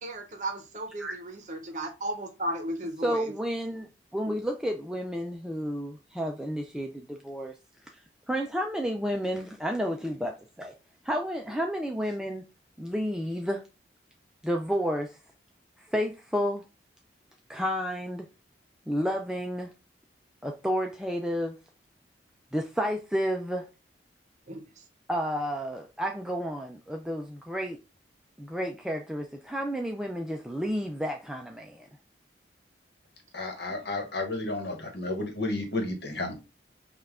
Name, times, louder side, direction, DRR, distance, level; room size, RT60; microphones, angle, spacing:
voice 1, 0.0-3.3 4.3-4.4 24.5-24.8 33.7-33.8, right 1 dB, 40° right, 0.7 m, -35 dB
voice 2, 3.0-7.5 8.3-10.3 10.6-10.7 11.0-12.4 12.8-13.6 14.4-15.2 15.9-16.6 17.5-18.3 18.9-19.7 20.4-21.6 22.5-23.6 25.1-27.8 28.4-31.9, equal, 5° right, 0.3 m, -31 dB
voice 3, 33.3-36.3, left 2 dB, 60° left, 1.2 m, -32 dB
5.4 x 2.3 x 3.5 m
head